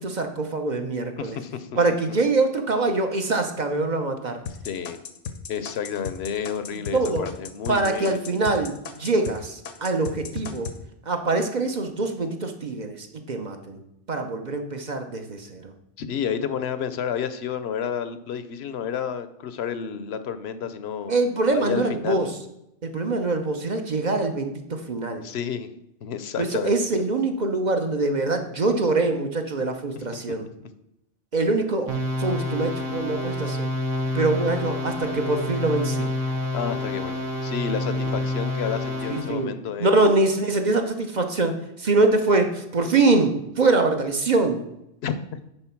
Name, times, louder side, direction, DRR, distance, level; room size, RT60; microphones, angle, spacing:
voice 1, 0.0-1.4 1.8-4.4 6.7-7.2 7.7-10.7 11.1-13.8 14.1-15.7 21.1-22.3 22.8-25.2 26.4-30.5 31.3-33.7 34.1-36.0 39.1-39.5 39.8-44.6, right 3 dB, 40° right, 5 dB, 0.9 m, -24 dB
voice 2, 1.2-1.7 4.6-5.0 5.5-8.4 16.0-21.1 21.5-22.4 25.2-25.7 26.0-26.8 29.9-30.4 36.5-39.9 45.0-45.2, left 7 dB, 60° left, 11 dB, 0.9 m, -30 dB
sound 1, 4.5-9.4 9.7-10.8, left 6 dB, 80° left, 1.2 m, -35 dB
sound 2, 31.9-39.4, left 1 dB, 85° right, 1.7 m, -28 dB
10.0 x 4.1 x 5.9 m, 0.83 s
omnidirectional pair, 1.3 m